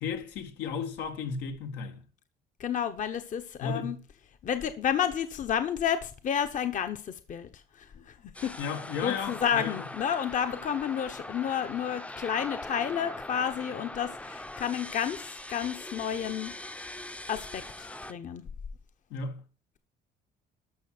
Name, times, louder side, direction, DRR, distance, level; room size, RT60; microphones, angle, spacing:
voice 1, 0.0-2.0 3.6-4.0 8.6-9.8 19.1-19.4, left 5 dB, 85° left, 2.0 m, -34 dB
voice 2, 2.6-4.0 4.4-7.5 7.8-8.2 8.4-8.5 9.0-16.5 17.3-18.4, left 8 dB, 50° left, 1.1 m, -31 dB
sound 1, 8.3-18.1, left 1 dB, 5° left, 0.6 m, -41 dB
12.5 x 6.5 x 6.0 m
cardioid pair, 110°, 17 cm